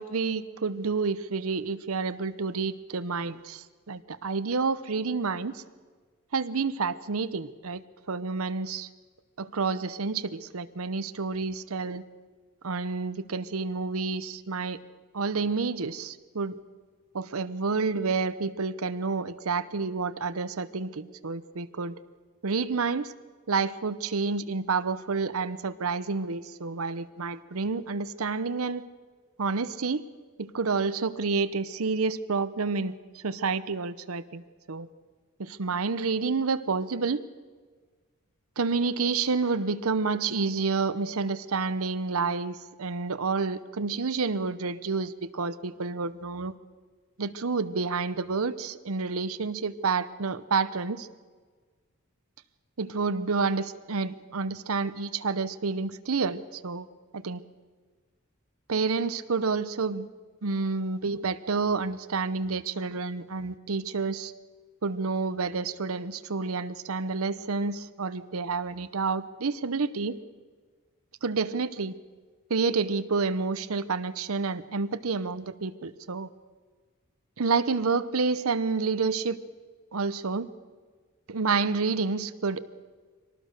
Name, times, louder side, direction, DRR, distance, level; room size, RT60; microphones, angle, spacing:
voice 1, 0.0-5.6 6.3-7.8 8.1-8.9 9.4-12.0 12.6-14.8 15.1-16.6 17.1-21.9 22.4-23.1 23.5-28.8 29.4-30.0 30.4-34.9 35.4-37.2 38.6-46.5 47.2-51.1 52.8-56.9 57.1-57.4 58.7-60.1 60.4-64.3 64.8-70.2 71.2-71.9 72.5-76.3 77.4-79.4 79.9-80.5 81.3-82.6, right 4 dB, 80° right, 13 dB, 0.9 m, -29 dB
23.5 x 19.0 x 6.6 m, 1.5 s
head